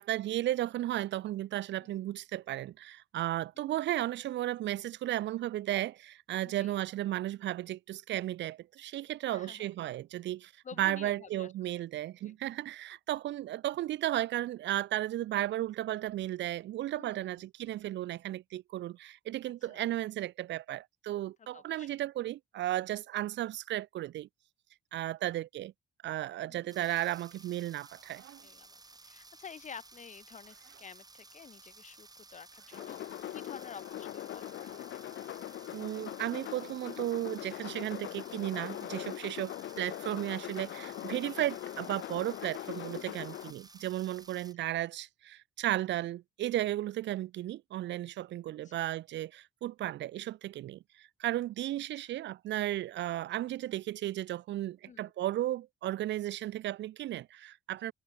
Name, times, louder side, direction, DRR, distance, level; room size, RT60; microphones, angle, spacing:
voice 1, 0.0-10.5 10.8-24.3 24.9-25.7 26.0-28.2 35.7-57.9, right 14 dB, 65° right, 0.5 m, -34 dB
voice 2, 6.4-6.7 9.3-9.7 10.6-11.8 12.2-12.4 16.9-17.4 19.7-19.9 21.5-22.0 26.5-26.8 28.4-35.1 42.9-43.2 48.6-49.0 54.9-55.0, left 7 dB, 40° left, 0.8 m, -51 dB
sound 1, 26.7-44.5, right 3 dB, 20° right, 2.1 m, -55 dB
sound 2, 27.8-28.7 30.3-30.9 32.5-33.0 34.4-34.9 36.1-36.8, right 16 dB, 90° right, 3.1 m, -61 dB
sound 3, 32.7-43.5, left 13 dB, 70° left, 0.9 m, -41 dB
cardioid pair, 90°, 20 cm